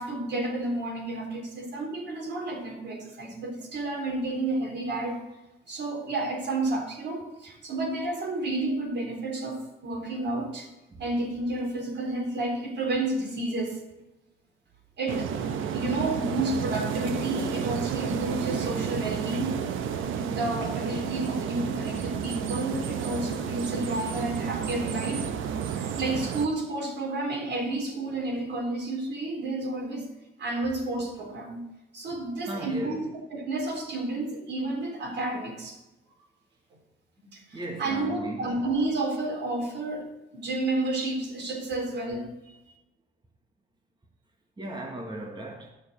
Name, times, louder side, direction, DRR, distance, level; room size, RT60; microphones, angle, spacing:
voice 1, 0.0-5.2 5.7-10.7 11.0-13.8 15.0-15.3 15.7-19.6 20.1-25.3 25.6-30.1 30.4-31.6 31.9-35.8 37.3-42.5, right 2 dB, 60° right, 3.8 m, -31 dB
sound 1, 15.1-26.5, right 7 dB, 80° right, 1.0 m, -31 dB
voice 2, 32.5-33.1 37.5-38.6 44.6-45.7, right 1 dB, 25° right, 1.6 m, -37 dB
11.0 x 6.4 x 6.4 m
cardioid pair, 90°, 20 cm